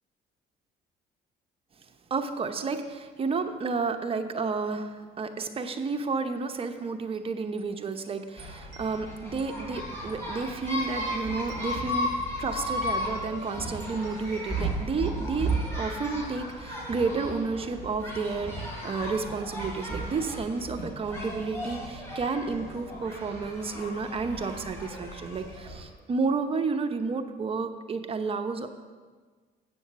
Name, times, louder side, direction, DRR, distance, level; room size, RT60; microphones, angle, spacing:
voice 1, 2.1-28.7, right 4 dB, 35° right, 7 dB, 0.8 m, -31 dB
Wind chime, 7.0-11.1 11.3-17.3, right 6 dB, 50° right, 2.0 m, -55 dB
sound 1, 8.4-25.8, equal, 15° left, 3.6 m, -35 dB
8.2 x 6.3 x 7.3 m, 1.4 s
cardioid pair, 110°, 17 cm